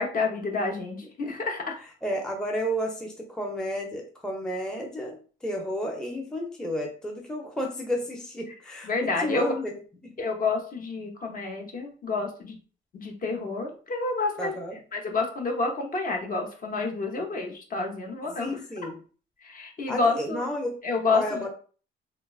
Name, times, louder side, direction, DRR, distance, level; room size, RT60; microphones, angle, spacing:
voice 1, 0.0-1.8 8.9-9.5 10.2-12.6 12.9-14.5 14.9-18.6 19.4-20.5 20.8-21.5, left 3 dB, 45° left, 1 dB, 0.7 m, -29 dB
voice 2, 2.0-9.7 14.4-14.8 18.4-19.0 19.9-20.8 21.1-21.5, equal, 5° left, 1 dB, 0.5 m, -32 dB
3.0 x 2.2 x 2.3 m, 0.40 s
cardioid pair, 90°, 20 cm